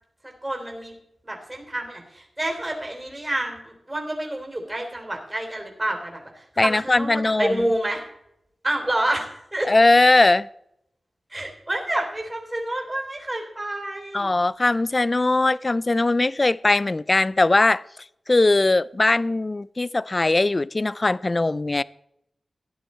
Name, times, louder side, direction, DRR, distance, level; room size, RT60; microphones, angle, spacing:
voice 1, 0.2-0.9 1.2-8.0 8.6-9.7 11.3-14.3, right 1 dB, 20° right, 3.3 m, -28 dB
voice 2, 6.6-7.6 9.7-10.5 14.1-17.8 18.3-21.8, left 2 dB, 30° left, 0.4 m, -20 dB
14.5 x 10.5 x 4.2 m
wide cardioid pair, 95°, 0 cm